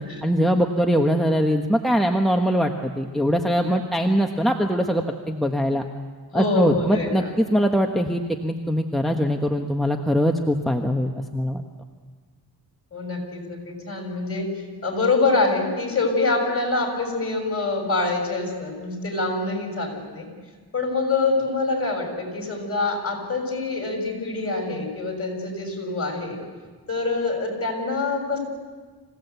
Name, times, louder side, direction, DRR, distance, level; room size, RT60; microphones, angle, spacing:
voice 1, 0.2-5.8 6.3-11.6, equal, ahead, 2 dB, 1.2 m, -22 dB
voice 2, 6.3-7.3 12.9-20.3 20.7-26.4 26.9-28.4, left 3 dB, 35° left, 2 dB, 6.3 m, -25 dB
26.0 x 17.0 x 8.2 m, 1.5 s
wide cardioid pair, 110°, 39 cm